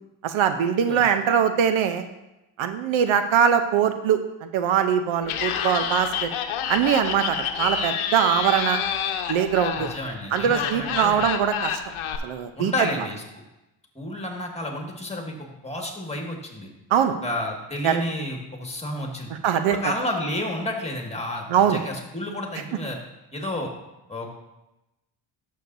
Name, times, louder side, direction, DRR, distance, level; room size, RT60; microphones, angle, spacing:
voice 1, 0.2-2.0 2.6-6.3 6.7-8.8 9.3-9.9 10.3-11.8 12.2-12.9 16.9-17.2 17.8-18.0 19.4-19.8 21.5-21.8, right 8 dB, 70° right, 8 dB, 0.8 m, -22 dB
Laughter, 5.2-12.2, left 8 dB, 75° left, 0.9 m, -29 dB
voice 2, 9.7-11.3 12.6-13.2 13.9-15.3 15.6-16.7 17.2-19.3 19.7-23.0 23.3-23.7 24.1-24.3, left 1 dB, 15° left, 1 dB, 1.8 m, -31 dB
11.5 x 6.6 x 2.7 m, 0.96 s
cardioid pair, 75°, 50 cm